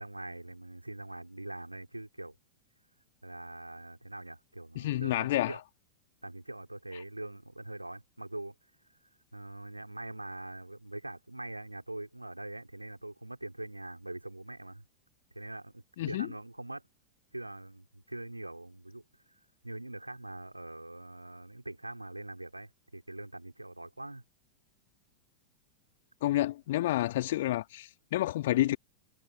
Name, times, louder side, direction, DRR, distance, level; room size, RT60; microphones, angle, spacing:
voice 1, 0.0-2.4 3.2-5.6 6.2-8.5 9.3-14.8 15.3-16.8 17.3-24.2, right 1 dB, 85° right, 3.7 m, -43 dB
voice 2, 4.7-5.6 16.0-16.3 26.2-28.8, left 15 dB, 55° left, 1.7 m, -29 dB
figure-of-eight pair, 90°, 0 cm